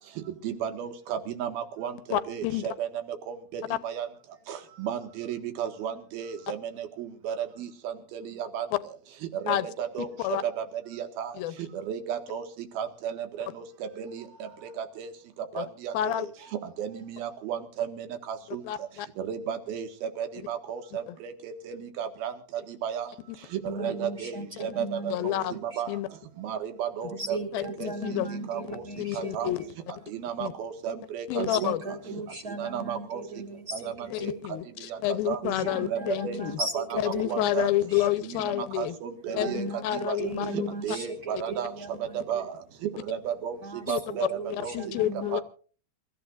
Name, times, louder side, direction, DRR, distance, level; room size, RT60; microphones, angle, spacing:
voice 1, 0.4-2.9 3.3-4.1 4.5-8.7 9.4-10.1 10.6-11.3 11.9-12.4 12.8-13.6 14.0-14.3 14.8-15.1 15.6-16.3 16.8-18.6 19.2-22.3 22.8-23.1 23.6-25.9 26.4-27.9 28.5-28.8 29.2-29.5 30.1-31.7 32.6-33.2 33.7-34.3 34.9-35.0 35.3-35.4 35.9-36.4 36.7-37.7 38.2-39.6 40.1-40.2 40.8-41.7 42.3-42.4 43.1-43.6 43.9-44.7 45.3-45.4, right 8 dB, 90° right, 7 dB, 3.6 m, -34 dB
voice 2, 2.1-2.7 9.5-9.7 10.2-10.4 11.4-11.5 15.5-15.7 15.9-16.3 18.7-19.1 21.1-21.2 24.8-25.5 25.9-26.1 27.5-28.3 29.0-29.7 30.4-30.5 31.3-31.8 34.1-36.6 37.0-39.0 39.3-39.5 39.8-40.7 43.9-44.0 44.7-45.4, left 14 dB, 90° left, 14 dB, 2.7 m, -29 dB
voice 3, 23.6-25.8 27.1-29.7 31.3-34.4 35.4-38.1 39.3-42.4 43.6-45.4, right 3 dB, 55° right, 5 dB, 1.0 m, -37 dB
27.5 x 14.5 x 2.5 m, 0.39 s
omnidirectional pair, 4.2 m